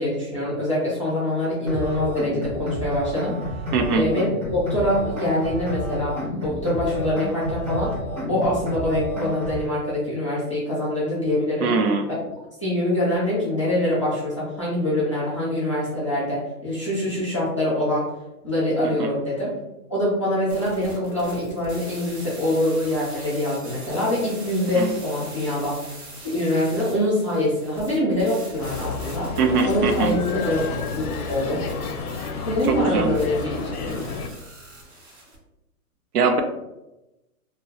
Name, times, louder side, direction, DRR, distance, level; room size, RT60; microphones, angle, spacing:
voice 1, 0.0-3.6 3.9-4.3 4.5-7.9 8.3-11.7 12.6-18.1 18.4-19.6 19.9-25.8 26.3-29.3 29.7-30.6 30.9-31.7 32.5-34.0, left 1 dB, 25° left, -9 dB, 0.4 m, -24 dB
sound 1, 1.7-9.7, left 1 dB, 30° right, 0.7 m, -30 dB
voice 2, 3.7-4.1 11.6-12.1 19.0-19.1 24.7-24.9 29.4-30.1 32.7-33.1 36.1-36.4, right 4 dB, 90° right, 6 dB, 0.6 m, -21 dB
sound 2, 20.5-35.4, right 1 dB, 50° right, 1.0 m, -42 dB
sound 3, 28.6-34.3, left 5 dB, 85° left, 0.5 m, -31 dB
2.5 x 2.2 x 2.8 m, 0.95 s
hypercardioid pair, 170°, 44 cm